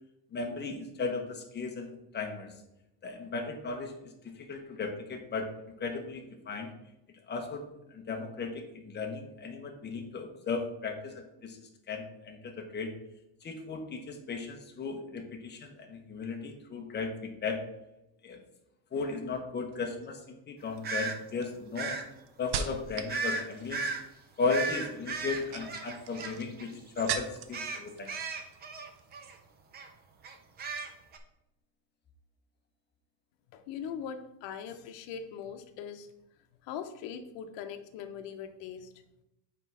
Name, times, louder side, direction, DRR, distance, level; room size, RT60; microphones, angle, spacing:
voice 1, 0.3-2.5 3.0-3.9 4.2-5.5 5.8-6.7 7.3-7.6 7.9-11.6 11.9-12.9 13.4-17.6 18.2-18.4 18.9-22.0 22.4-23.8 24.4-28.1, left 4 dB, 20° left, 4 dB, 0.8 m, -36 dB
sound 1, 19.7-20.1 20.8-23.2 23.5-24.0 25.2-27.6 27.9-28.6 28.9-29.1, right 7 dB, 80° right, 0.8 m, -39 dB
sound 2, 20.8-21.2 21.8-22.0 23.1-23.4 23.7-24.0 24.5-26.7 27.0-27.2 27.5-29.4 29.7-29.9 30.2-31.2, right 4 dB, 20° right, 0.4 m, -35 dB
voice 2, 33.5-36.1 36.6-38.9, left 7 dB, 60° left, 8 dB, 0.9 m, -41 dB
5.3 x 4.6 x 5.5 m, 0.89 s
cardioid pair, 160°, 48 cm